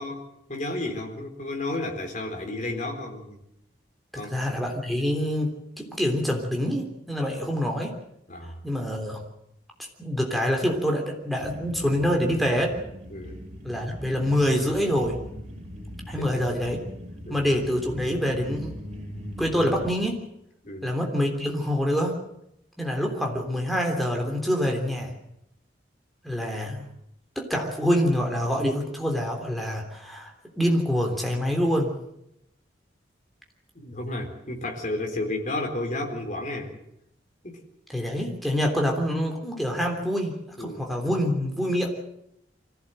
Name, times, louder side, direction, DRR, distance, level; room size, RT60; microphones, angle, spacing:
voice 1, 0.0-3.4 4.2-4.3 8.3-8.6 13.1-13.4 16.2-16.3 17.3-17.4 20.6-20.9 33.7-36.8 37.4-37.6 38.5-38.8 40.6-41.0, left 2 dB, 40° left, 2 dB, 4.1 m, -32 dB
voice 2, 4.1-7.9 8.6-9.2 10.0-12.8 13.6-15.2 16.1-16.8 17.3-18.8 19.4-20.2 20.8-22.2 22.8-25.1 26.2-26.8 27.3-31.9 37.9-41.9, equal, ahead, 1 dB, 3.3 m, -26 dB
sound 1, 11.4-19.9, equal, 40° right, 6.4 m, -40 dB
24.5 x 16.0 x 7.8 m, 0.80 s
head